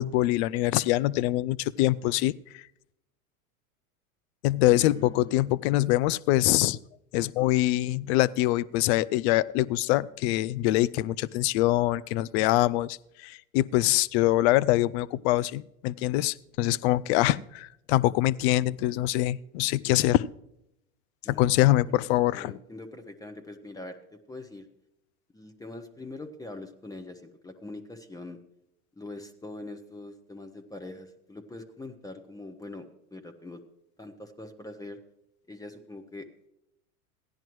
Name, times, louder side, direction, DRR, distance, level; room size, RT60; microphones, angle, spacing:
voice 1, 0.0-2.3 4.4-6.8 7.1-20.3 21.4-22.6, left 16 dB, 50° left, 20 dB, 0.4 m, -24 dB
voice 2, 4.6-5.4 21.2-22.0 22.3-24.7 25.3-28.4 29.0-33.6 34.0-35.0 35.5-36.3, left 2 dB, 10° left, 7 dB, 0.8 m, -43 dB
16.0 x 10.5 x 3.1 m, 0.82 s
hypercardioid pair, 105°, 42 cm